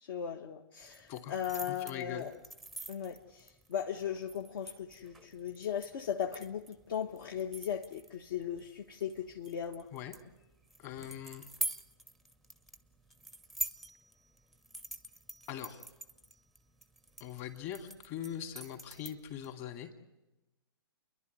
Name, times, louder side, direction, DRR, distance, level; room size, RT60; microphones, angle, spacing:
voice 1, 0.0-2.3 2.9-9.9, left 8 dB, 55° left, 3 dB, 1.4 m, -38 dB
sound 1, 0.8-19.5, right 2 dB, ahead, 0.7 m, -46 dB
voice 2, 1.7-2.3 9.9-10.1 10.8-11.5 15.5-15.8 17.2-19.9, left 10 dB, 35° left, 5 dB, 2.8 m, -42 dB
29.5 x 11.5 x 9.6 m, 1.0 s
hypercardioid pair, 145°, 14 cm